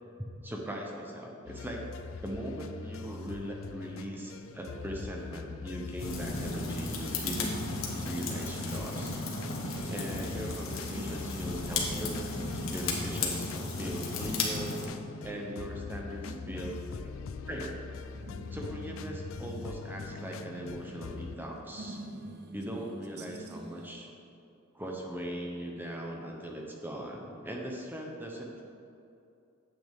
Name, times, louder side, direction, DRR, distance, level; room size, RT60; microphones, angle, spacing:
voice 1, 0.2-1.9 2.2-7.6 8.0-9.1 9.8-14.9 15.2-17.1 17.5-17.9 18.5-22.0 22.5-24.1 24.7-28.6, equal, 10° right, -1 dB, 0.8 m, -40 dB
sound 1, 1.5-21.4, left 5 dB, 75° left, 0.4 m, -42 dB
sound 2, 6.0-14.8, left 3 dB, 90° left, 1.4 m, -35 dB
sound 3, 6.4-23.9, right 1 dB, 55° right, 0.6 m, -47 dB
9.4 x 7.8 x 3.5 m, 2.6 s
head